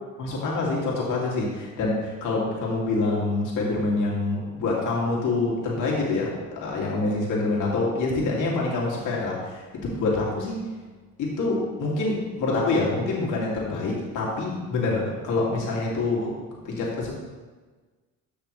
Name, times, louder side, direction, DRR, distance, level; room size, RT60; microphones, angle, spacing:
voice 1, 0.2-10.6 11.2-17.1, left 3 dB, 80° left, -4 dB, 2.8 m, -26 dB
14.0 x 5.9 x 3.4 m, 1.3 s
cardioid pair, 90°, 30 cm